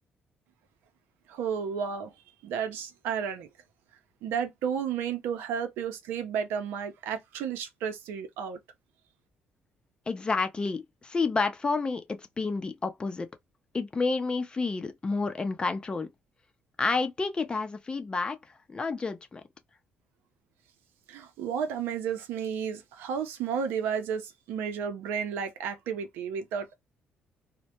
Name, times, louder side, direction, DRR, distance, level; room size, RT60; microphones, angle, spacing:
voice 1, 1.3-2.1 2.4-3.5 4.2-8.6 21.1-26.7, right 7 dB, 90° right, 0.6 m, -32 dB
voice 2, 10.1-13.3 13.7-16.1 16.8-18.4 18.7-19.4, left 4 dB, 25° left, 0.5 m, -30 dB
2.1 x 2.1 x 2.8 m
cardioid pair, 85°, 4 cm